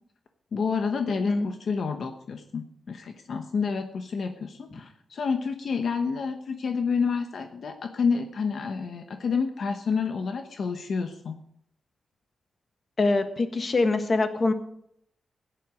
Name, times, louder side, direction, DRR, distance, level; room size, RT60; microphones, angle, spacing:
voice 1, 0.5-11.4, left 5 dB, 65° left, 5 dB, 1.0 m, -29 dB
voice 2, 13.0-14.5, left 3 dB, 40° left, 7 dB, 1.5 m, -24 dB
15.5 x 10.5 x 5.1 m, 0.71 s
wide cardioid pair, 130°, 0 cm